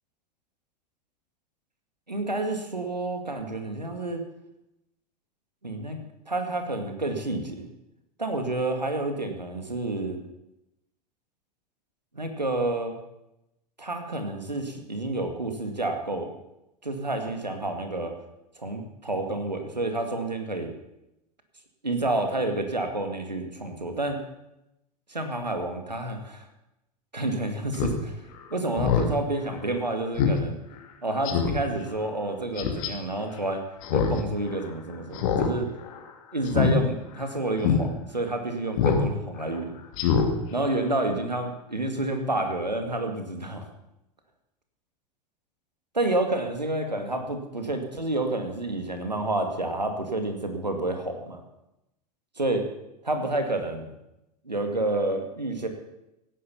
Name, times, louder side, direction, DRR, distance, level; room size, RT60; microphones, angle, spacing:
voice 1, 2.1-4.2 5.6-6.0 6.3-7.7 8.2-10.2 12.1-13.0 13.8-16.3 16.8-18.1 18.6-20.7 21.8-24.2 25.1-26.5 27.1-28.2 28.5-30.6 31.0-33.6 33.9-35.7 36.3-39.7 40.5-43.6 45.9-51.4 52.4-52.6 53.0-53.9 54.4-55.7, right 2 dB, 90° right, 6 dB, 2.3 m, -29 dB
Speech synthesizer, 27.7-28.0 28.3-28.4 28.8-29.1 29.5-29.6 30.2-30.4 30.7-30.8 31.2-31.6 32.6-32.9 33.8-34.2 34.5-34.6 35.1-35.5 35.8-36.0 36.5-36.7 37.1-37.2 37.6-37.8 38.8-39.0 39.4-39.5 39.9-40.3 40.6-40.7, left 6 dB, 55° left, 2.5 m, -24 dB
17.0 x 10.0 x 7.1 m, 0.89 s
figure-of-eight pair, 85°, 21 cm